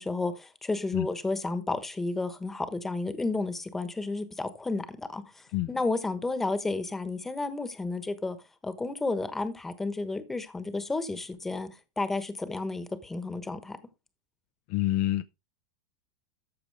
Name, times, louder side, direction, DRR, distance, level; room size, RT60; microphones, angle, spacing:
voice 1, 0.0-8.4 8.6-11.7 12.0-13.8, left 3 dB, 10° left, 1.1 m, -32 dB
voice 2, 14.7-15.2, left 15 dB, 55° left, 0.5 m, -27 dB
14.0 x 5.0 x 3.4 m
supercardioid pair, 130°, 3 cm